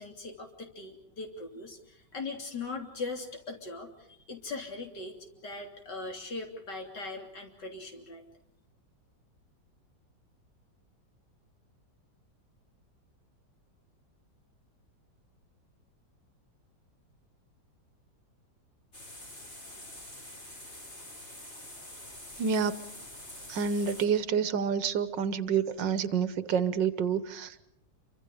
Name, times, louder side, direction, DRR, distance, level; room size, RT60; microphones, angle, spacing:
voice 1, 0.0-5.2 5.4-8.2, left 3 dB, 70° left, 3 dB, 3.7 m, -40 dB
sound 1, 18.9-24.1, left 1 dB, 35° left, 5.3 m, -46 dB
voice 2, 22.4-22.9 23.5-27.6, right 6 dB, 85° right, 13 dB, 1.8 m, -28 dB
28.0 x 24.5 x 5.0 m, 0.80 s
omnidirectional pair, 1.9 m